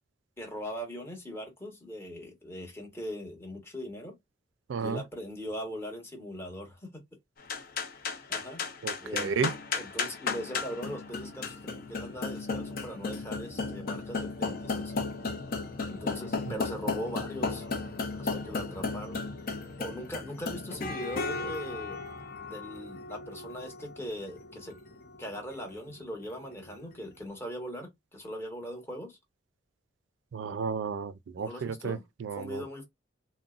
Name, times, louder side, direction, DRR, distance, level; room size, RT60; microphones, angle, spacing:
voice 1, 0.4-4.1 4.8-7.0 8.3-8.6 9.0-9.3 9.7-15.1 15.8-17.7 18.2-19.2 19.8-22.0 22.4-24.8 25.2-29.2 31.4-32.0 32.3-32.8, equal, 15° left, 1.1 m, -40 dB
voice 2, 4.7-5.0 8.8-9.5 30.3-32.6, right 5 dB, 85° right, 0.3 m, -33 dB
sound 1, 7.4-26.9, left 4 dB, 50° left, 0.7 m, -35 dB
3.8 x 2.1 x 2.4 m
head